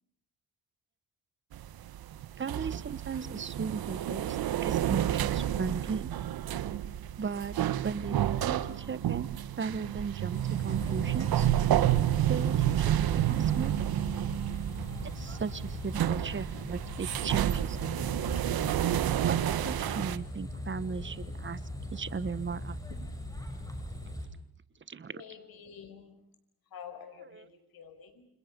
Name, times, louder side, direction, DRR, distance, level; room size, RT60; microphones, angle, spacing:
sound 1, 1.5-20.2, right 12 dB, 70° right, 1.3 m, -30 dB
voice 1, 2.4-6.1 7.2-9.3 9.6-11.5 12.3-13.7 15.0-18.3 19.2-21.6 21.9-23.1 24.9-25.2 27.3-27.4, right 5 dB, 30° right, 15 dB, 1.3 m, -37 dB
sound 2, 10.3-24.3, left 1 dB, 10° left, 7.5 m, -40 dB
voice 2, 25.1-26.2 26.7-28.3, left 7 dB, 70° left, 7 dB, 5.6 m, -48 dB
29.5 x 27.0 x 5.4 m, 0.75 s
cardioid pair, 100°, 38 cm